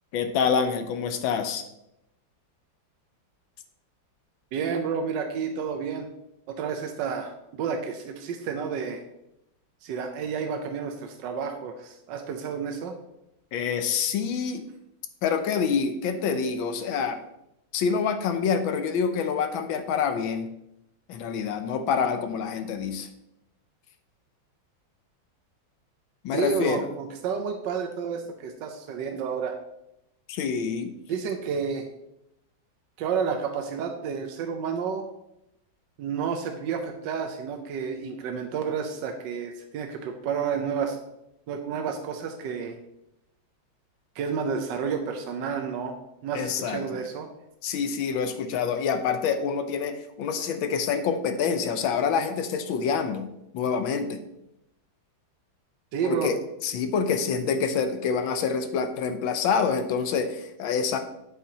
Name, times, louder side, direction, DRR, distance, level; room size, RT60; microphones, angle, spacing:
voice 1, 0.1-1.6 13.5-14.6 15.2-17.2 17.7-20.5 21.1-23.1 26.2-26.9 30.3-30.9 46.3-47.0 47.6-53.3 53.5-54.2 56.0-56.4 56.6-61.0, left 6 dB, 80° left, 8 dB, 1.5 m, -26 dB
voice 2, 4.5-6.1 6.5-9.0 9.8-12.9 26.3-29.5 31.1-31.9 33.0-35.0 36.0-41.0 41.5-42.8 44.1-47.3 55.9-56.3, right 6 dB, 70° right, 4 dB, 1.3 m, -30 dB
8.3 x 7.6 x 2.8 m, 0.85 s
omnidirectional pair, 2.2 m